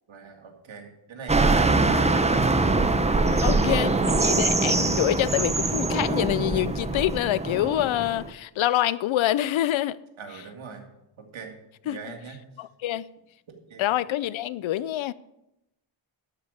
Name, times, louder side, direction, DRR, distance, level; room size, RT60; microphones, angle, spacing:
voice 1, 0.1-2.5 3.2-4.0 10.2-10.9 11.2-11.5 11.8-12.4 13.5-13.9, right 5 dB, 70° right, 2.2 m, -41 dB
sound 1, 1.3-8.3, right 3 dB, 15° right, 0.7 m, -23 dB
voice 2, 3.4-3.9 4.2-10.0 11.9-12.0 12.6-13.1 13.8-15.1, left 13 dB, 70° left, 0.6 m, -26 dB
12.0 x 5.0 x 8.2 m
wide cardioid pair, 115°, 49 cm